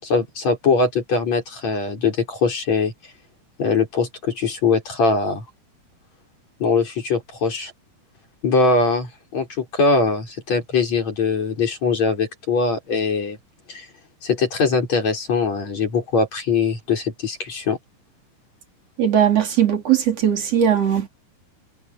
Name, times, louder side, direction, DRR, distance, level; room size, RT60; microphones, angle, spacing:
voice 1, 0.0-2.9 3.6-5.4 6.6-7.7 8.4-13.4 13.7-13.9 14.2-17.8, left 4 dB, 40° left, 6.1 m, -21 dB
voice 2, 19.0-21.1, right 9 dB, 40° right, 3.4 m, -18 dB
omnidirectional pair, 5.0 m